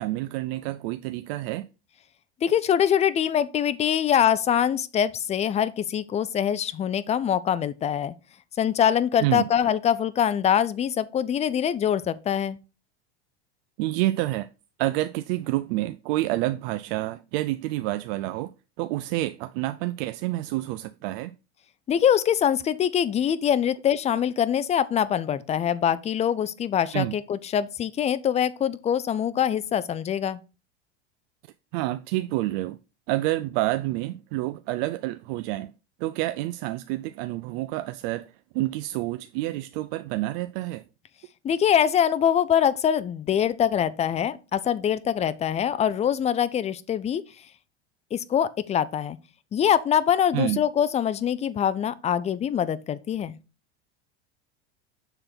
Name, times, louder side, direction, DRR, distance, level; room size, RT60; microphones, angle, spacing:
voice 1, 0.0-1.7 9.2-9.5 13.8-14.5 14.8-18.5 18.8-21.3 26.9-27.2 31.7-32.8 33.1-35.7 36.0-40.8 50.3-50.6, right 17 dB, 60° right, 0.5 m, -28 dB
voice 2, 2.4-8.1 8.6-12.6 21.9-30.4 41.4-47.2 48.1-49.2 49.5-53.4, left 9 dB, 20° left, 0.4 m, -24 dB
6.7 x 3.9 x 4.4 m
hypercardioid pair, 105°, 32 cm